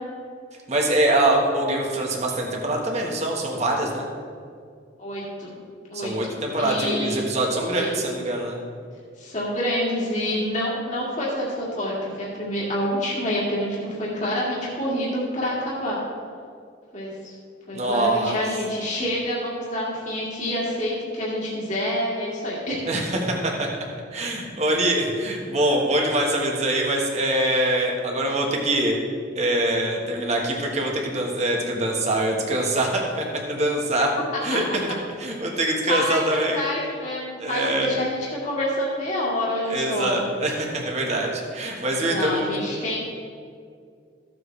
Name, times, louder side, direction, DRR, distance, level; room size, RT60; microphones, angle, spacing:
voice 1, 0.7-4.1 5.9-8.6 17.7-18.4 22.9-29.0 29.3-34.1 34.4-34.6 35.2-36.6 37.4-37.9 39.7-42.6, right 1 dB, 35° right, 0 dB, 1.5 m, -24 dB
voice 2, 5.0-5.6 5.9-6.3 6.6-7.2 7.7-7.9 9.2-16.0 16.9-17.3 17.7-22.9 34.5-34.6 35.6-40.2 42.0-43.0, left 1 dB, 40° left, -6 dB, 2.1 m, -27 dB
14.5 x 7.7 x 3.3 m, 2.2 s
head